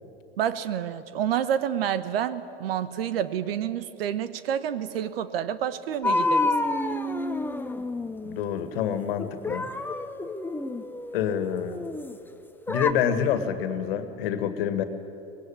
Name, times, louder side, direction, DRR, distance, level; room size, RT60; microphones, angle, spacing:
voice 1, 0.4-6.5, right 9 dB, 70° right, 14 dB, 1.2 m, -28 dB
sound 1, 6.0-8.5 9.2-12.2 12.7-12.9, left 2 dB, 5° left, 1.1 m, -29 dB
voice 2, 8.2-9.7 11.1-11.9 12.7-14.8, left 8 dB, 65° left, 10 dB, 2.0 m, -27 dB
24.0 x 20.0 x 8.9 m, 2.9 s
hypercardioid pair, 85°, 31 cm